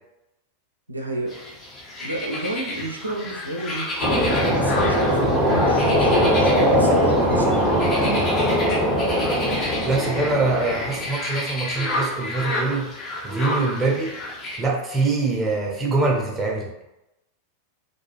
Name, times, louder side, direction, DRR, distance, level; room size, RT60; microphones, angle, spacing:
voice 1, 0.9-1.4 2.0-3.9 4.5-8.0, right 1 dB, 85° right, 0 dB, 0.3 m, -30 dB
sound 1, 1.3-14.6, left 1 dB, 25° left, 0.6 m, -31 dB
sound 2, 4.0-11.1, equal, 55° left, 1.1 m, -20 dB
voice 2, 9.8-12.9 13.2-14.1 14.6-16.9, right 3 dB, 15° right, -2 dB, 0.6 m, -24 dB
2.4 x 2.2 x 3.0 m, 0.91 s
figure-of-eight pair, 90°, 0 cm